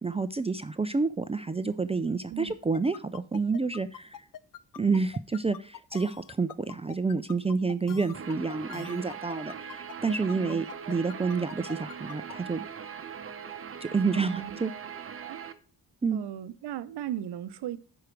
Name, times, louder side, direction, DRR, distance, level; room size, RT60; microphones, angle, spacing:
voice 1, 0.0-4.2 4.8-12.6 13.8-14.7 16.0-16.2, right 4 dB, 15° right, 0.3 m, -29 dB
sound 1, 2.7-12.3, left 10 dB, 55° left, 0.5 m, -44 dB
Guitar, 8.1-15.5, right 7 dB, 35° right, 0.7 m, -41 dB
voice 2, 10.3-10.9 14.2-14.6 15.2-15.4 16.1-17.8, right 10 dB, 85° right, 0.7 m, -37 dB
11.5 x 4.8 x 4.6 m
cardioid pair, 115°, 40 cm